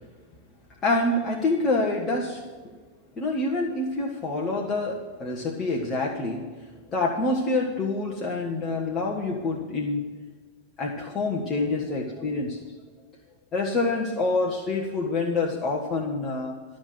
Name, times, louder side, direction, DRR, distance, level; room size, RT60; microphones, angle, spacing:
voice 1, 0.8-2.4 3.2-6.5 6.9-10.1 10.8-12.6 13.5-16.6, left 2 dB, 25° left, -2 dB, 1.4 m, -26 dB
12.5 x 6.5 x 9.0 m, 1.5 s
figure-of-eight pair, 90°, 0 cm